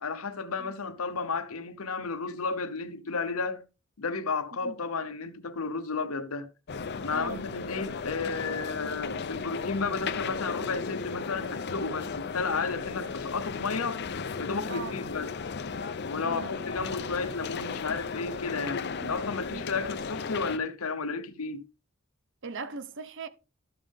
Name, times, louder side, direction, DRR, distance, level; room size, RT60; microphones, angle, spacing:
voice 1, 0.0-3.6 4.0-6.5 7.0-14.0 14.4-15.3 16.1-21.6, left 4 dB, 85° left, 0.9 m, -33 dB
sound 1, 6.7-20.6, left 5 dB, 50° left, 0.6 m, -35 dB
voice 2, 7.1-7.4 14.7-14.9 16.2-16.5 19.0-19.2 19.5-19.6 22.4-23.3, right 3 dB, 60° right, 0.8 m, -38 dB
13.0 x 7.2 x 3.6 m
head